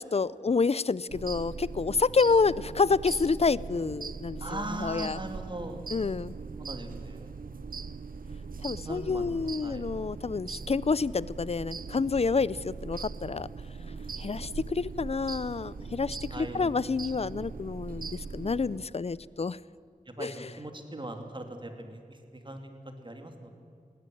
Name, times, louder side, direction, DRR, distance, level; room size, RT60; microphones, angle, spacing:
voice 1, 0.0-5.2 5.9-6.3 8.6-13.5 14.2-19.6 20.2-20.3, left 4 dB, 45° left, 21 dB, 0.5 m, -28 dB
sound 1, 1.1-18.9, right 4 dB, 80° right, 0.8 m, -40 dB
voice 2, 4.4-5.8 6.6-7.3 8.8-9.2 9.6-9.9 16.3-16.6 20.1-23.5, right 1 dB, 35° right, 5 dB, 2.8 m, -40 dB
19.5 x 17.0 x 9.3 m, 2.5 s
wide cardioid pair, 70°, 14 cm